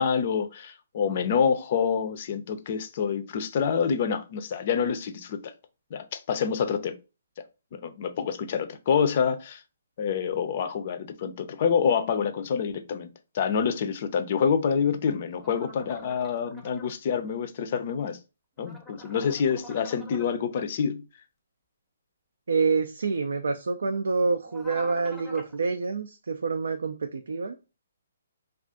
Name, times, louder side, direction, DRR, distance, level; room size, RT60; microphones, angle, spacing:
voice 1, 0.0-5.4 5.9-6.9 7.7-9.6 10.0-13.1 13.3-18.2 18.6-21.0, left 7 dB, 45° left, 0.5 m, -27 dB
sound 1, 15.4-16.9 18.6-20.4 24.5-25.5, left 1 dB, 5° left, 0.7 m, -46 dB
voice 2, 22.5-27.6, right 4 dB, 75° right, 0.3 m, -27 dB
2.4 x 2.3 x 3.5 m
hypercardioid pair, 140°, 0 cm